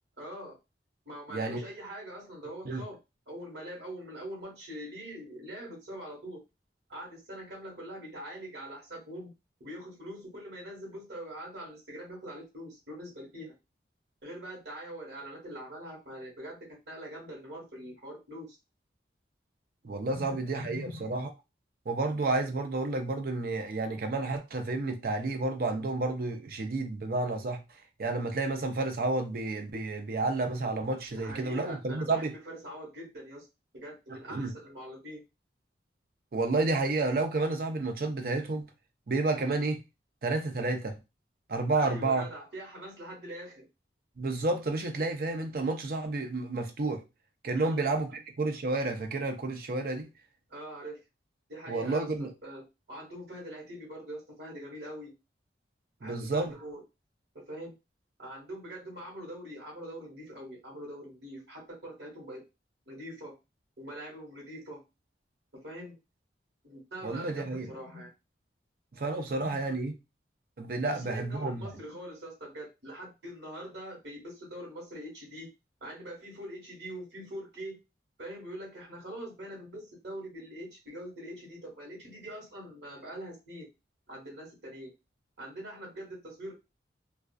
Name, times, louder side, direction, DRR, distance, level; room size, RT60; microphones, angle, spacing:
voice 1, 0.2-0.6 1.0-3.0 3.3-6.4 6.9-9.3 9.6-13.5 14.2-18.6 20.1-21.1 31.1-33.4 33.7-35.2 41.7-43.6 47.5-47.8 50.5-51.0 51.5-52.1 52.4-52.6 52.9-55.1 56.0-56.8 57.5-57.7 58.2-62.4 62.9-63.3 63.8-64.8 65.5-66.0 66.6-68.1 69.3-69.7 70.9-75.5 75.8-77.8 78.2-83.7 84.1-84.9 85.4-86.5, equal, 75° right, 1.2 m, -43 dB
voice 2, 1.3-1.6 2.6-2.8 19.8-21.3 21.9-32.3 34.1-34.5 36.3-38.7 39.1-39.8 40.2-41.0 41.5-42.3 44.2-47.0 47.4-48.1 48.4-50.1 51.7-52.3 56.0-56.5 67.0-67.7 68.9-69.9 70.6-71.7, right 3 dB, 50° right, 0.5 m, -30 dB
2.4 x 2.3 x 2.3 m
head